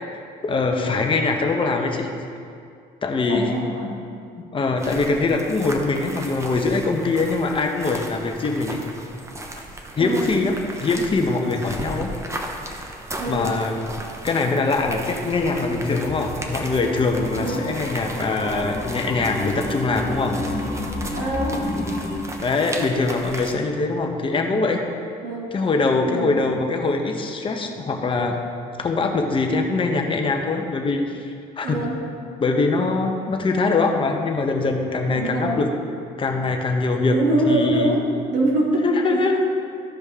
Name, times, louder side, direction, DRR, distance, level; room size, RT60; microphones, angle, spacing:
voice 1, 0.4-2.1 3.0-3.5 4.4-8.8 10.0-12.1 13.3-13.7 14.2-20.4 22.4-24.8 25.5-28.4 28.8-31.8 32.4-35.7 36.2-37.1 37.5-37.9 38.8-39.4, left 3 dB, 30° left, 3 dB, 1.0 m, -23 dB
voice 2, 3.3-4.0 10.0-10.3 13.2-13.6 17.4-17.7 21.1-21.7 25.2-25.6 26.1-26.4 31.6-32.1 35.1-35.6 37.1-39.2, right 1 dB, 80° right, -3 dB, 2.2 m, -24 dB
sound 1, 4.8-23.5, right 1 dB, 15° right, 0.9 m, -36 dB
sound 2, 15.4-22.2, left 2 dB, 50° left, 2.0 m, -31 dB
14.0 x 5.1 x 3.7 m, 2.4 s
cardioid pair, 110°, 17 cm